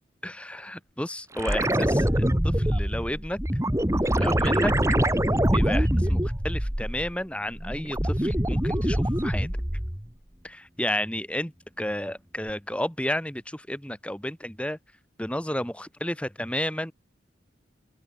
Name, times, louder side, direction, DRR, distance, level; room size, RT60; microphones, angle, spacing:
voice 1, 0.2-3.4 4.2-5.2 5.5-9.5 10.4-11.5 11.8-14.8 15.2-16.9, left 1 dB, 5° left, 3.5 m, -32 dB
sound 1, 1.4-7.2 7.5-10.1 12.5-12.6, equal, 15° right, 2.7 m, -24 dB
open air
head